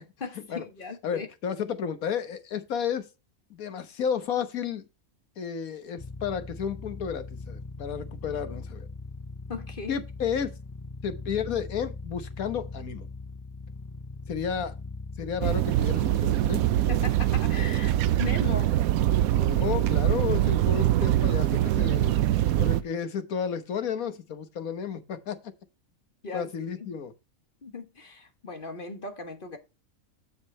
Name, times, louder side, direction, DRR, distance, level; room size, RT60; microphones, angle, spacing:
voice 1, 0.0-1.3 9.5-10.0 16.9-18.7 26.2-26.5 26.8-26.9 27.6-29.6, left 4 dB, 40° left, 1.4 m, -38 dB
voice 2, 1.0-3.1 3.5-4.8 5.4-8.9 9.9-10.5 11.0-13.1 14.3-14.7 15.2-16.7 19.4-22.1 22.6-25.4 26.3-27.1, left 7 dB, 90° left, 1.6 m, -32 dB
sound 1, 6.0-16.9, left 3 dB, 20° left, 0.5 m, -40 dB
sound 2, 15.4-22.8, right 13 dB, 85° right, 1.1 m, -23 dB
7.5 x 5.9 x 4.3 m
omnidirectional pair, 1.4 m